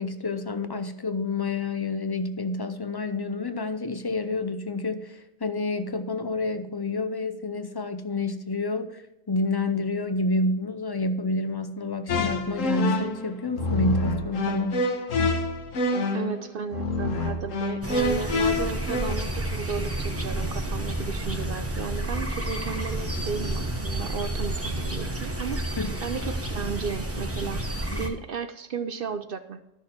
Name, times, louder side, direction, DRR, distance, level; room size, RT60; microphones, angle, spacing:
voice 1, 0.0-14.9 25.8-25.9 27.9-28.1, left 2 dB, 35° left, 10 dB, 0.4 m, -29 dB
sound 1, 12.1-19.1, left 2 dB, 90° left, 1.6 m, -27 dB
voice 2, 16.1-29.6, right 6 dB, 55° right, 10 dB, 0.7 m, -34 dB
sound 2, 17.8-28.1, right 1 dB, 10° right, 1.1 m, -30 dB
13.0 x 6.4 x 4.4 m, 0.94 s
omnidirectional pair, 1.3 m